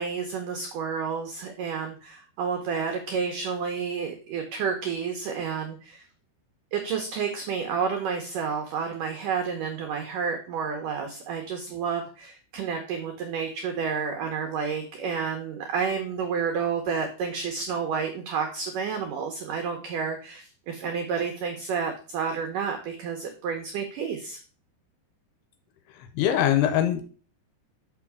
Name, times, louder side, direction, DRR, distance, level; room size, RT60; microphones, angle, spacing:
voice 1, 0.0-6.1 6.7-24.4, right 6 dB, 80° right, 4 dB, 1.9 m, -30 dB
voice 2, 25.9-27.0, left 11 dB, 80° left, 8 dB, 2.6 m, -23 dB
6.2 x 6.0 x 4.7 m, 0.40 s
omnidirectional pair, 4.9 m